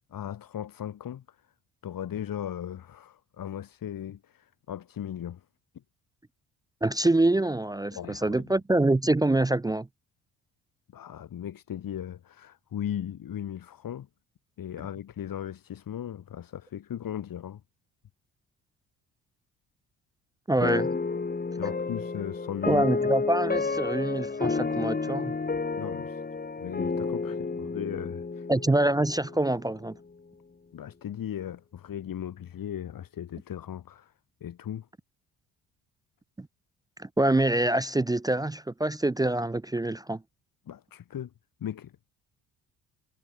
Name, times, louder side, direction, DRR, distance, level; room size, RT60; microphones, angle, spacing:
voice 1, 0.1-1.2 1.8-5.4 7.9-8.5 10.9-14.1 14.6-17.6 21.6-22.8 25.5-26.2 26.6-28.5 30.7-34.1 34.4-34.9 40.7-41.3 41.6-41.9, left 10 dB, 55° left, 4.3 m, -37 dB
voice 2, 6.8-9.9 20.5-20.9 22.7-25.3 28.5-30.0 36.4-36.5 37.0-40.2, right 2 dB, 10° right, 0.6 m, -25 dB
sound 1, 20.6-29.8, left 4 dB, 25° left, 2.1 m, -31 dB
hypercardioid pair, 55°, 39 cm